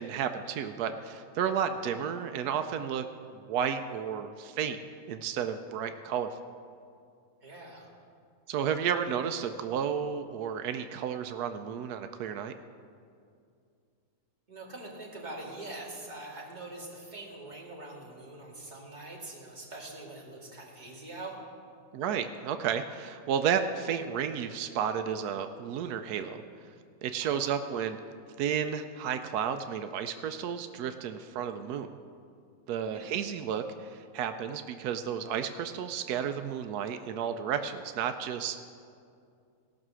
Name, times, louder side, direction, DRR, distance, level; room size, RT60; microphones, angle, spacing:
voice 1, 0.0-3.0 3.5-4.8 5.1-6.3 8.5-12.5 21.9-26.4 27.0-28.0 28.4-31.9 32.7-38.6, right 8 dB, 90° right, 8 dB, 1.1 m, -32 dB
voice 2, 7.4-7.9 14.5-21.4 27.3-27.5 32.9-33.1, right 2 dB, 30° right, -3 dB, 2.1 m, -44 dB
17.5 x 6.1 x 6.2 m, 2.4 s
omnidirectional pair, 1.6 m